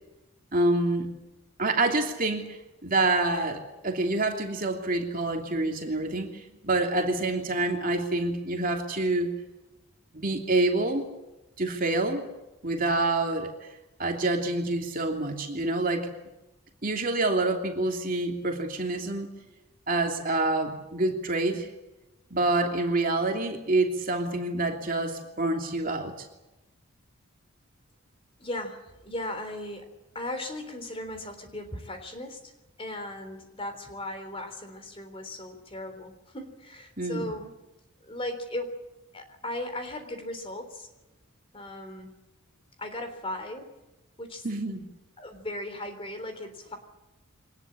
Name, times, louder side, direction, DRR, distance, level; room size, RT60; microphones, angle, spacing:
voice 1, 0.5-1.1 1.6-2.5 2.8-9.3 10.1-11.0 11.6-12.3 12.6-13.5 14.0-16.1 16.8-19.3 19.9-21.7 22.3-26.3 37.0-37.3 44.4-44.9, right 2 dB, 40° right, 3 dB, 2.9 m, -27 dB
voice 2, 28.4-32.5 32.8-37.5 38.0-38.7 39.1-40.9 41.5-42.1 42.8-43.7 44.2-44.4 45.2-46.8, left 1 dB, 25° left, 7 dB, 3.5 m, -37 dB
24.0 x 19.5 x 8.7 m, 1.0 s
head